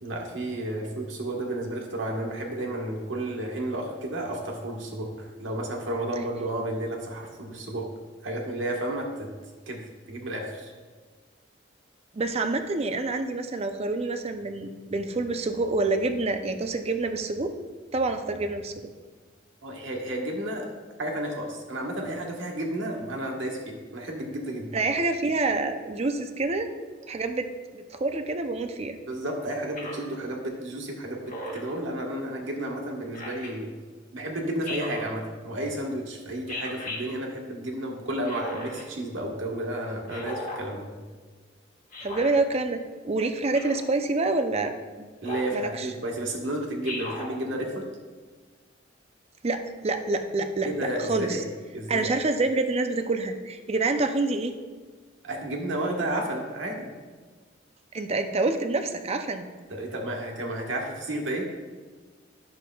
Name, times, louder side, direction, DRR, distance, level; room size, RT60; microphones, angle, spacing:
voice 1, 0.0-7.8 8.2-9.3 9.7-9.8 10.1-10.7 19.6-20.7 21.0-24.8 29.0-31.2 31.5-33.7 34.1-40.9 45.2-47.8 50.6-51.5 51.7-52.1 55.2-56.9 59.7-61.4, right 1 dB, 85° right, 0 dB, 1.3 m, -32 dB
voice 2, 12.1-17.5 17.9-18.7 24.7-26.7 27.1-27.5 27.7-29.0 42.0-45.1 45.5-45.9 49.4-50.7 51.1-51.4 51.9-54.5 57.9-59.4, right 3 dB, 35° right, 7 dB, 0.5 m, -27 dB
Speech synthesizer, 29.8-30.1 31.3-31.7 33.1-33.5 34.6-35.1 36.5-37.0 38.2-38.8 40.1-40.6 41.9-42.3 43.5-43.9 45.2-45.6 46.8-47.3, left 1 dB, 45° left, 1.4 m, -36 dB
11.0 x 6.5 x 2.3 m, 1.4 s
head